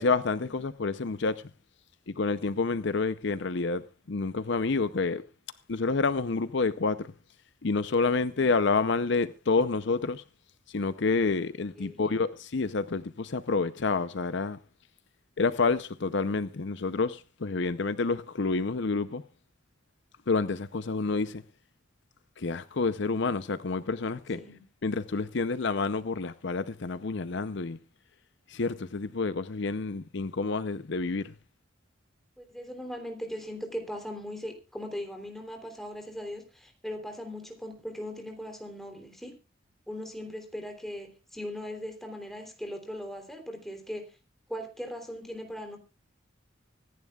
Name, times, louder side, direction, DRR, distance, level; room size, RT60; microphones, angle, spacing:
voice 1, 0.0-1.4 2.2-5.2 5.7-7.1 7.6-10.2 10.7-14.6 15.4-19.2 20.3-21.4 22.4-27.8 28.5-31.3, left 4 dB, 60° left, 0.7 m, -28 dB
voice 2, 11.8-12.2 24.3-24.6 32.4-39.3 39.9-44.1 44.5-45.8, equal, ahead, 3.2 m, -39 dB
25.0 x 11.0 x 2.4 m
head